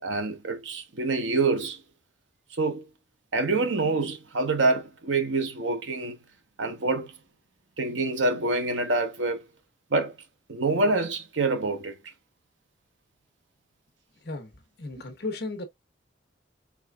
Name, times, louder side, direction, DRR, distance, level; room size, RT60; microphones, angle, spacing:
voice 1, 0.0-1.8 2.5-2.8 3.3-6.2 6.6-7.1 7.8-9.5 9.9-10.1 10.5-12.1, right 3 dB, 80° right, 0.9 m, -26 dB
voice 2, 14.2-14.5 14.8-15.6, left 2 dB, 60° left, 1.0 m, -34 dB
4.7 x 3.4 x 2.3 m
head